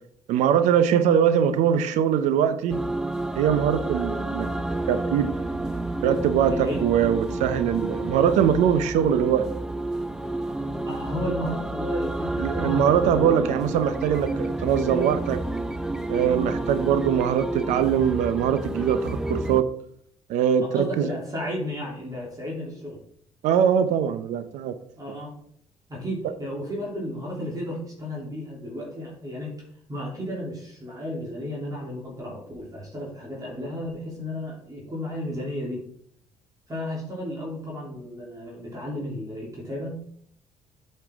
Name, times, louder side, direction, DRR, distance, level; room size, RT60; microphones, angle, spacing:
voice 1, 0.3-2.8 3.4-4.5 4.9-5.3 6.0-9.5 12.4-15.4 16.1-19.7 20.3-21.1 23.4-24.7, right 8 dB, 80° right, 11 dB, 0.7 m, -22 dB
sound 1, 2.7-19.6, right 2 dB, 5° right, 0.6 m, -30 dB
voice 2, 6.5-6.8 10.8-13.5 20.6-23.0 25.0-25.3 25.9-29.5 29.9-35.9 36.7-40.0, equal, 30° right, -4 dB, 3.0 m, -33 dB
8.3 x 5.7 x 3.5 m, 0.65 s
supercardioid pair, 70°, 12 cm